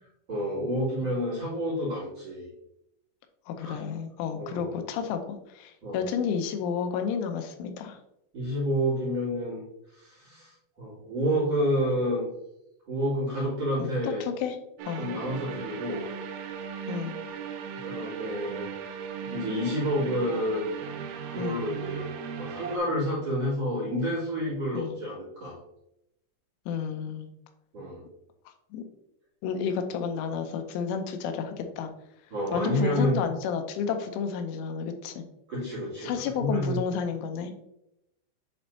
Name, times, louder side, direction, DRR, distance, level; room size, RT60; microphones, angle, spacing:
voice 1, 0.3-2.5 3.6-3.8 4.4-4.7 5.8-6.0 8.3-9.6 9.9-12.2 12.9-14.2 15.0-16.0 17.8-18.7 19.2-20.6 21.3-22.1 22.4-25.6 27.7-28.0 32.3-33.2 35.5-36.8, equal, 40° right, -6 dB, 2.6 m, -29 dB
voice 2, 3.5-5.2 5.5-8.0 13.8-14.6 14.9-15.1 16.9-17.2 21.4-21.6 24.7-25.0 26.7-27.3 28.7-28.8 29.4-31.9 32.5-35.3 36.0-37.5, left 6 dB, 90° left, 6 dB, 3.1 m, -31 dB
sound 1, 14.8-22.8, right 7 dB, 80° right, 2.9 m, -37 dB
10.0 x 4.3 x 2.7 m, 0.83 s
omnidirectional pair, 5.5 m